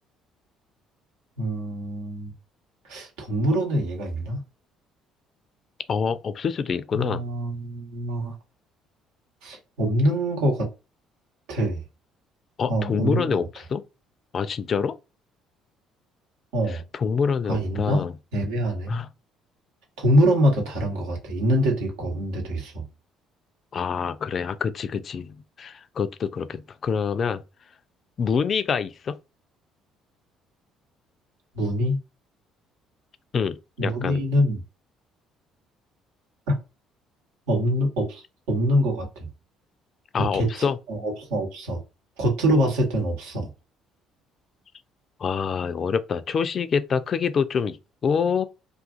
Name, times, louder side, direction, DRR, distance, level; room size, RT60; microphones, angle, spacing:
voice 1, 1.4-2.3 2.9-4.4 6.9-8.3 9.4-10.7 11.5-11.8 12.7-13.4 16.5-16.8 17.5-18.0 18.3-18.9 20.0-22.8 31.6-32.0 33.8-34.6 36.5-36.6 37.5-39.3 40.2-41.8 42.2-43.5, equal, 75° right, 0.9 m, -24 dB
voice 2, 5.9-7.2 12.6-13.8 14.3-14.9 16.9-18.1 18.9-19.1 23.7-27.4 28.2-29.2 33.3-34.2 40.1-40.8 45.2-47.8 48.0-48.4, left 6 dB, 45° left, 0.3 m, -26 dB
2.5 x 2.4 x 2.4 m
hypercardioid pair, 55°, 0 cm